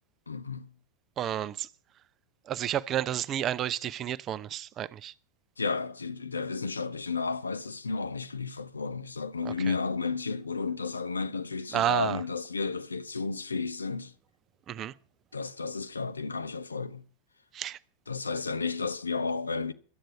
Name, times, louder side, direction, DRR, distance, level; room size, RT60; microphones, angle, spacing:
voice 1, 0.3-0.7 5.6-14.1 15.3-17.0 18.1-19.7, left 4 dB, 75° left, 0.8 m, -32 dB
voice 2, 1.2-1.7 2.5-5.1 9.4-9.7 11.7-12.2 14.7-14.9 17.5-17.8, right 11 dB, 30° right, 0.6 m, -31 dB
12.0 x 8.9 x 7.9 m
figure-of-eight pair, 90°, 0 cm